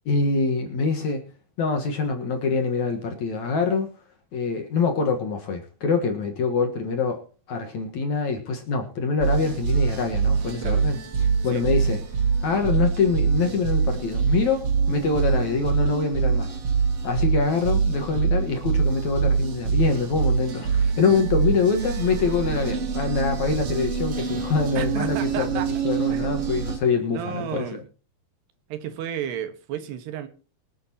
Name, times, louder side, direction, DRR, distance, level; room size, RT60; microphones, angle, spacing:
voice 1, 0.1-1.3 1.6-3.9 4.3-7.2 7.5-12.0 12.4-16.6 17.0-27.7, left 4 dB, 60° left, 2.2 m, -25 dB
sound 1, 9.2-26.8, right 6 dB, 45° right, 2.2 m, -24 dB
voice 2, 24.8-25.7 26.1-26.3 27.1-27.8 28.7-30.3, right 9 dB, 80° right, 3.5 m, -32 dB
24.5 x 8.4 x 2.9 m
omnidirectional pair, 4.8 m